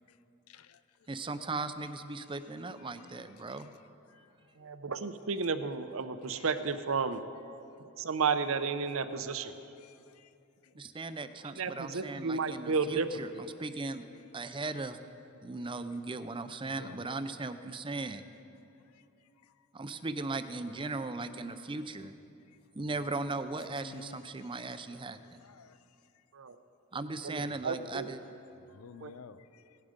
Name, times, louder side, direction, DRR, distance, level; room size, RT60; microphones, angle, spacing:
voice 1, 0.5-0.8 2.1-3.7 4.1-4.3 6.3-6.5 9.8-10.3 10.6-10.7 16.7-17.0 18.0-18.1 18.9-19.0 21.1-21.5 23.8-24.2 25.1-25.8 27.4-27.6 28.6-29.8, left 5 dB, 90° left, 0.5 m, -53 dB
voice 2, 1.1-3.7 10.8-14.0 14.3-15.0 15.4-18.2 19.7-22.1 22.7-25.4 26.9-28.2, right 3 dB, 25° right, 0.5 m, -38 dB
voice 3, 4.6-7.2 7.8-9.5 11.5-13.2 26.3-26.6 27.2-28.1 29.0-29.1, right 5 dB, 70° right, 0.7 m, -32 dB
17.0 x 11.0 x 5.2 m
head